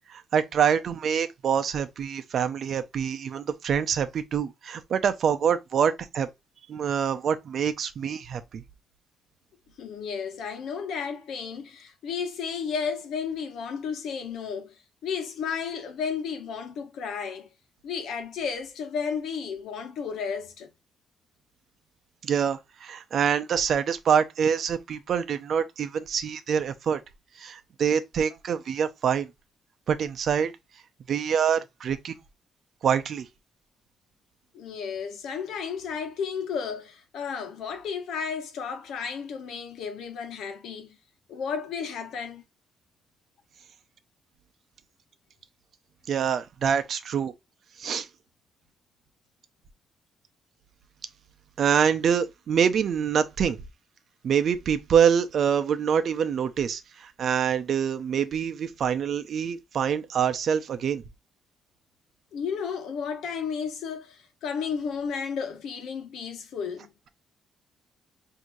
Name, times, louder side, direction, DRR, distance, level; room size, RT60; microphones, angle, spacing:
voice 1, 0.1-6.3 6.7-8.6 22.2-27.0 27.4-29.3 29.9-30.5 31.1-32.1 32.8-33.3 46.1-47.3 47.8-48.1 51.6-53.6 54.2-61.0, right 7 dB, 55° right, 0.6 m, -25 dB
voice 2, 9.8-17.5 17.8-20.7 34.5-41.0 41.3-42.4 62.3-66.9, left 6 dB, 85° left, 1.0 m, -33 dB
6.1 x 2.8 x 2.6 m
cardioid pair, 145°, 0 cm